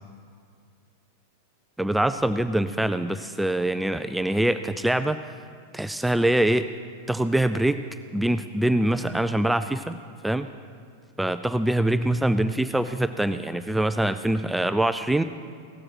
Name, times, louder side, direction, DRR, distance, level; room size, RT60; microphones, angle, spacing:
voice 1, 1.8-5.2 5.7-6.7 7.1-7.8 8.1-10.0 10.2-10.5 11.2-15.2, right 1 dB, 5° right, 11 dB, 0.3 m, -24 dB
17.0 x 7.7 x 6.0 m, 2.2 s
figure-of-eight pair, 90°, 0 cm